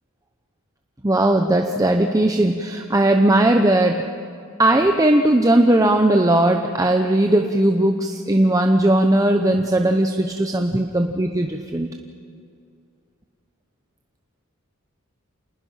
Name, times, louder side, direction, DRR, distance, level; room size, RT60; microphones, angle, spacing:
voice 1, 1.0-4.0 4.6-11.9, right 1 dB, 15° right, 4 dB, 0.8 m, -18 dB
27.0 x 20.0 x 5.7 m, 2.4 s
head